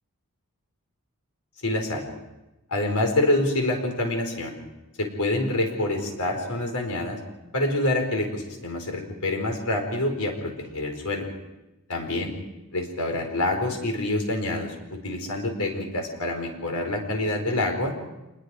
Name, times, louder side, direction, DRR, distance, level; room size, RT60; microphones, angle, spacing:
voice 1, 1.6-2.0 2.7-4.5 5.0-7.2 7.5-11.3 11.9-12.3 12.7-17.9, left 1 dB, 90° left, 3 dB, 4.6 m, -26 dB
26.5 x 21.0 x 5.0 m, 1.0 s
head